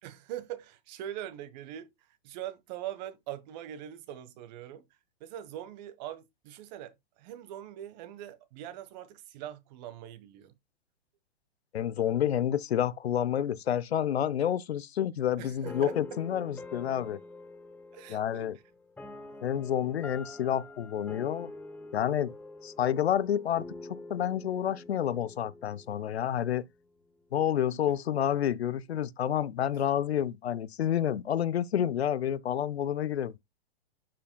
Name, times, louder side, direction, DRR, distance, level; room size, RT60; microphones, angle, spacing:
voice 1, 0.0-4.8 5.2-10.5 15.4-16.2 17.9-18.5 30.1-30.2, right 12 dB, 45° right, 1.2 m, -42 dB
voice 2, 11.7-17.2 18.1-18.6 19.4-21.5 21.9-22.3 22.6-26.6 27.3-33.4, left 10 dB, 80° left, 0.6 m, -29 dB
sound 1, 15.6-26.7, left 2 dB, 5° left, 0.9 m, -46 dB
11.5 x 5.1 x 2.2 m
hypercardioid pair, 120°, 31 cm